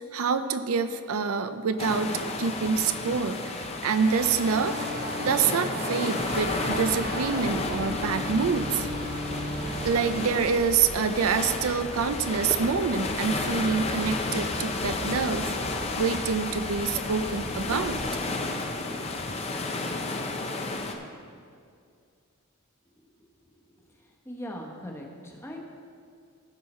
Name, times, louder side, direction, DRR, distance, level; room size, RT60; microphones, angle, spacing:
voice 1, 0.1-2.1 2.4-4.8 5.2-8.9 9.8-18.0, right 5 dB, 70° right, 10 dB, 0.5 m, -26 dB
sound 1, 1.8-20.9, left 3 dB, 30° left, 0.6 m, -32 dB
sound 2, 4.0-10.4, right 1 dB, 45° right, 0.9 m, -35 dB
sound 3, 6.2-18.1, equal, 65° left, 1.8 m, -41 dB
voice 2, 24.2-25.6, equal, 10° left, -1 dB, 1.0 m, -39 dB
15.5 x 5.5 x 4.3 m, 2.3 s
head